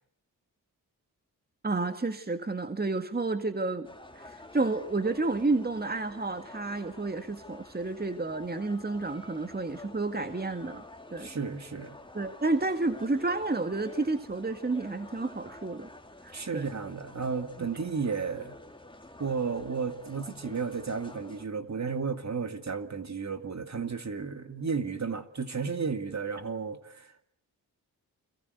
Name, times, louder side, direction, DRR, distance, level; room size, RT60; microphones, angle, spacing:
voice 1, 1.6-3.9 4.2-10.8 11.1-11.3 12.1-15.9 16.2-16.7, right 3 dB, 25° right, 1.9 m, -30 dB
sound 1, 3.8-21.5, left 1 dB, 15° left, 2.6 m, -49 dB
voice 2, 11.2-12.0 16.3-18.5 19.2-27.3, right 5 dB, 45° right, 2.5 m, -33 dB
29.5 x 23.0 x 8.1 m
cardioid pair, 50°, 38 cm